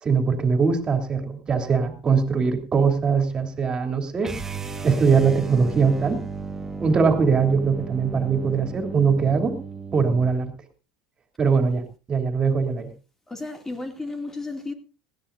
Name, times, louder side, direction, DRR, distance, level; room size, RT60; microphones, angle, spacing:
voice 1, 0.0-4.3 4.8-6.2 6.8-9.6 9.9-10.5 11.4-11.8 12.1-12.9, right 5 dB, 30° right, 3.2 m, -21 dB
sound 1, 4.2-10.4, right 4 dB, 15° right, 1.6 m, -35 dB
voice 2, 13.3-14.7, left 3 dB, 15° left, 2.6 m, -33 dB
19.5 x 16.0 x 2.7 m
hypercardioid pair, 75°, 3 cm